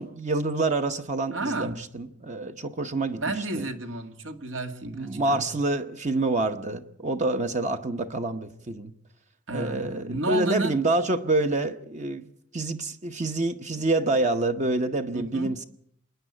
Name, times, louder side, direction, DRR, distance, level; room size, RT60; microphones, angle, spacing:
voice 1, 0.0-3.6 4.9-8.9 9.5-15.6, right 2 dB, 40° right, 7 dB, 0.9 m, -27 dB
voice 2, 1.3-1.8 3.2-5.5 9.5-10.8 15.1-15.6, right 2 dB, 75° right, 6 dB, 2.0 m, -32 dB
26.5 x 10.0 x 9.9 m, 0.72 s
head